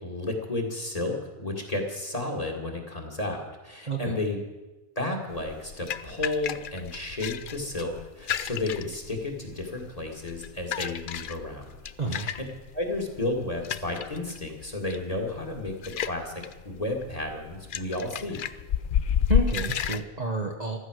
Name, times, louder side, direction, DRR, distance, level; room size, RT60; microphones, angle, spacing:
voice 1, 0.0-4.4 5.0-11.6 12.1-12.3 12.7-18.4, left 2 dB, 25° left, 1 dB, 2.4 m, -32 dB
voice 2, 3.9-4.2 12.0-12.3 19.3-20.8, right 2 dB, 30° right, 1 dB, 1.2 m, -29 dB
sound 1, 5.3-20.0, left 8 dB, 75° left, 0.4 m, -32 dB
15.0 x 13.0 x 6.4 m, 1.1 s
omnidirectional pair, 1.6 m